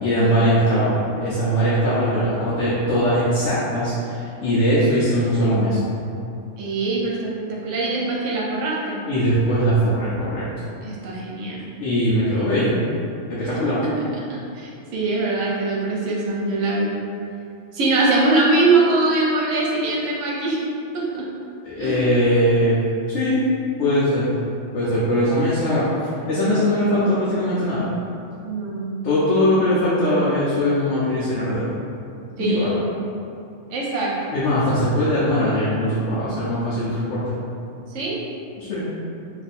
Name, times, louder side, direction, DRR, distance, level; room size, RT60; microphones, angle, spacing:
voice 1, 0.0-5.9 9.1-10.5 11.8-12.7 13.3-13.8 21.6-22.8 23.1-23.4 23.8-24.3 24.7-25.9 26.3-27.9 29.0-31.7 32.4-32.7 34.3-37.4 38.6-38.9, equal, 70° left, -10 dB, 1.0 m, -20 dB
voice 2, 6.6-9.0 10.8-11.6 14.0-16.9 17.7-20.6 20.9-21.2 21.8-22.0 28.4-29.1 32.4-32.8 33.7-34.3 37.9-38.1, right 3 dB, 75° right, -4 dB, 1.0 m, -22 dB
2.6 x 2.5 x 4.1 m, 2.7 s
omnidirectional pair, 1.3 m